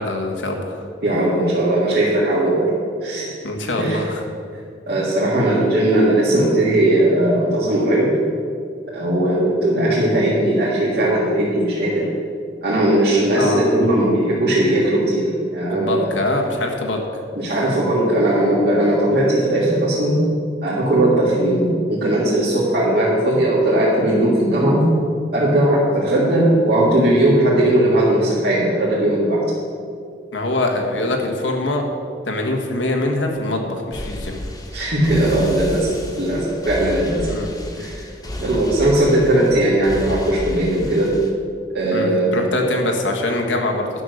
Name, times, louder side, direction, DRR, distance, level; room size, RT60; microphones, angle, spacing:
voice 1, 0.0-0.9 3.4-4.3 13.3-13.7 15.6-17.0 30.3-31.9 32.2-34.4 37.2-37.5 41.9-44.0, left 2 dB, 90° left, 2 dB, 1.6 m, -23 dB
voice 2, 1.0-2.7 3.0-3.4 3.8-4.0 4.9-8.2 8.9-12.1 12.6-16.1 17.3-20.2 20.6-24.9 25.3-29.5 34.7-37.4 37.8-38.0 38.4-41.1 41.7-42.6, right 1 dB, 60° right, -8 dB, 2.0 m, -18 dB
sound 1, 33.9-41.3, left 1 dB, 20° left, 1.2 m, -32 dB
10.5 x 6.4 x 6.5 m, 2.3 s
head